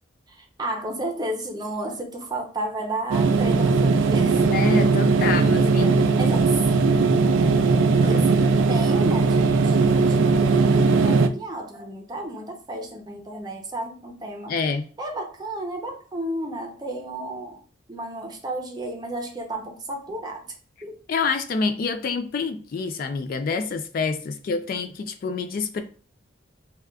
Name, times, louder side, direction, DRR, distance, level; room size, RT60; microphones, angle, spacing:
voice 1, 0.3-4.5 5.2-7.4 8.0-14.6 15.0-17.6 17.9-20.5 20.8-21.0, right 1 dB, 20° right, 0.5 m, -33 dB
sound 1, 3.1-11.3, right 4 dB, 80° right, 0.4 m, -19 dB
voice 2, 4.5-6.1 8.0-8.3 14.5-14.8 21.1-25.8, left 4 dB, 50° left, 0.3 m, -27 dB
4.9 x 2.3 x 2.2 m
head